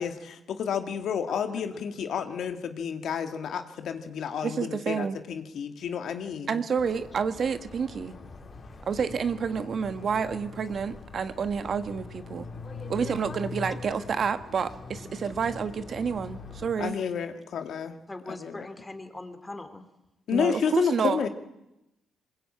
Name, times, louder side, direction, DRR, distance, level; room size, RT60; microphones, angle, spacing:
voice 1, 0.0-6.6 16.8-17.9 18.3-18.7 20.3-21.3, left 7 dB, 65° left, 7 dB, 1.9 m, -30 dB
voice 2, 4.4-5.2 6.5-8.1 8.9-12.5 12.9-16.9 20.3-21.2, right 6 dB, 50° right, 10 dB, 1.3 m, -29 dB
sound 1, 6.8-16.7, left 4 dB, 45° left, 4.6 m, -42 dB
voice 3, 18.1-19.8, left 2 dB, 15° left, 8 dB, 3.0 m, -41 dB
22.0 x 20.5 x 8.7 m, 0.91 s
cardioid pair, 90°, 0 cm